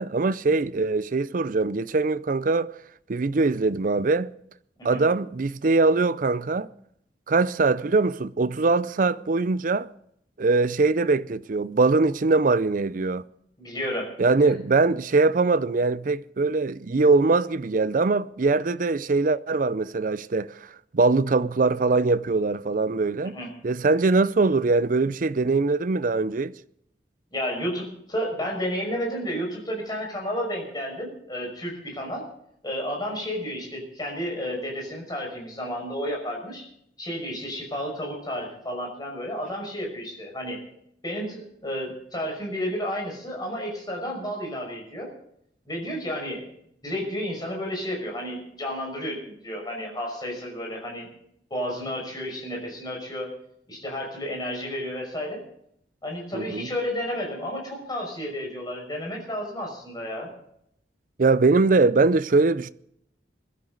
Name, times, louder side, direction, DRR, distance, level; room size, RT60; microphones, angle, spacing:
voice 1, 0.0-2.7 3.1-4.3 4.8-6.7 7.3-9.9 10.4-13.2 14.2-23.4 23.6-26.5 56.3-56.7 61.2-62.7, right 3 dB, 50° right, 0.5 m, -22 dB
voice 2, 13.6-14.1 23.3-23.5 27.3-32.2 32.6-36.6 37.0-40.6 41.0-45.1 45.7-46.4 46.8-51.1 51.5-53.3 53.7-55.4 56.0-60.3, equal, 25° left, 5.7 m, -31 dB
21.5 x 12.5 x 4.0 m
head